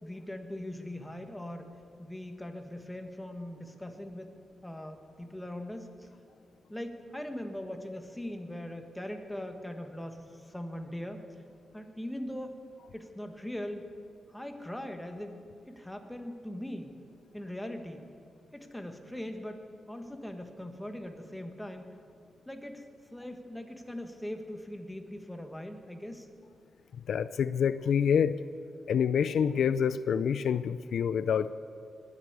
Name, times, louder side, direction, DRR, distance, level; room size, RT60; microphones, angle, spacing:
voice 1, 0.0-6.1 6.7-11.2 11.7-12.6 12.9-13.9 14.3-16.9 17.3-18.0 18.5-21.9 22.4-26.3, left 1 dB, 5° left, 5 dB, 1.5 m, -41 dB
voice 2, 27.1-28.4 28.9-31.5, left 7 dB, 75° left, 14 dB, 0.4 m, -27 dB
20.0 x 8.0 x 8.3 m, 2.4 s
cardioid pair, 95°, 0 cm